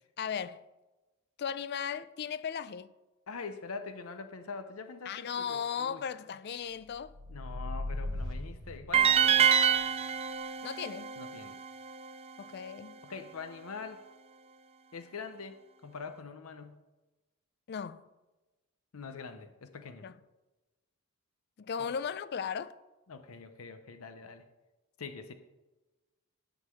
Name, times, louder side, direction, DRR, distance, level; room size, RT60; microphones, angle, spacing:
voice 1, 0.2-0.6 1.4-2.9 5.1-7.1 10.6-11.1 12.4-13.0 17.7-18.0 20.0-20.1 21.6-22.7, left 7 dB, 50° left, 0.4 m, -36 dB
voice 2, 3.3-6.0 7.3-9.4 11.2-11.6 13.0-14.0 14.9-16.8 18.9-20.1 21.8-21.9 23.1-24.5 25.0-25.3, left 4 dB, 80° left, 0.7 m, -44 dB
sound 1, 6.9-9.6, left 1 dB, 60° right, 1.1 m, -38 dB
sound 2, 8.9-12.1, right 8 dB, 30° right, 0.3 m, -26 dB
11.5 x 3.9 x 7.5 m
head